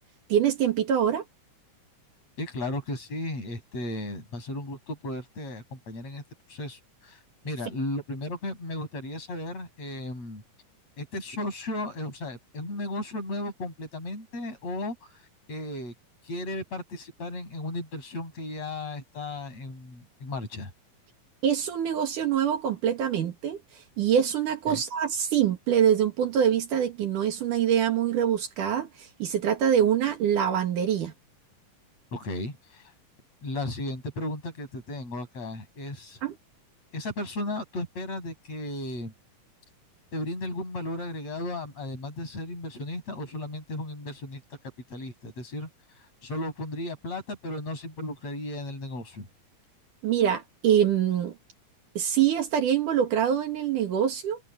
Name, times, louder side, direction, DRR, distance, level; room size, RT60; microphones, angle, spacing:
voice 1, 0.3-1.2 21.4-23.6 24.0-31.1 36.2-36.4 50.0-51.3 52.0-54.4, right 9 dB, 70° right, 3.3 m, -24 dB
voice 2, 2.4-6.2 6.5-7.2 7.4-10.4 11.0-15.0 15.5-15.9 16.2-20.7 24.7-24.8 32.1-32.9 33.4-36.2 36.9-39.1 40.1-44.4 44.9-45.7 46.2-49.3, left 2 dB, 50° left, 8.9 m, -35 dB
omnidirectional pair, 3.8 m